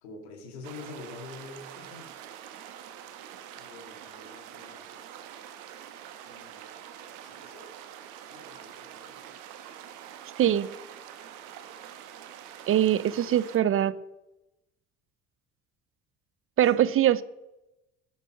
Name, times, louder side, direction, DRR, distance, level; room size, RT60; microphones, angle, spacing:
voice 1, 0.0-2.1 3.5-4.9 6.3-6.6 7.0-7.7 8.3-9.2 12.8-13.3 13.6-13.7 16.7-16.9, left 3 dB, 85° left, 5 dB, 2.0 m, -47 dB
sound 1, 0.6-13.6, right 10 dB, 75° right, 1.2 m, -45 dB
voice 2, 10.4-10.7 12.7-14.0 16.6-17.2, right 11 dB, 45° right, 18 dB, 0.6 m, -22 dB
12.0 x 6.8 x 6.4 m, 0.97 s
hypercardioid pair, 70°, 31 cm